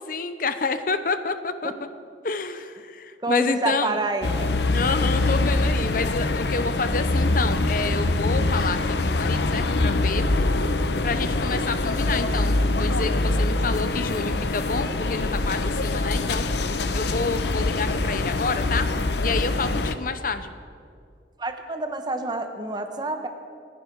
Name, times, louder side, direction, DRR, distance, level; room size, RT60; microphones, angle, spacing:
voice 1, 0.0-1.7 2.2-4.0 4.7-10.3 11.0-16.5 16.9-18.9 19.2-20.5, left 4 dB, 50° left, 11 dB, 0.7 m, -29 dB
voice 2, 3.2-4.5 21.4-23.3, right 2 dB, 25° right, 7 dB, 1.0 m, -28 dB
sound 1, 4.2-19.9, left 2 dB, 70° left, 0.8 m, -24 dB
26.5 x 10.5 x 4.7 m, 2.3 s
head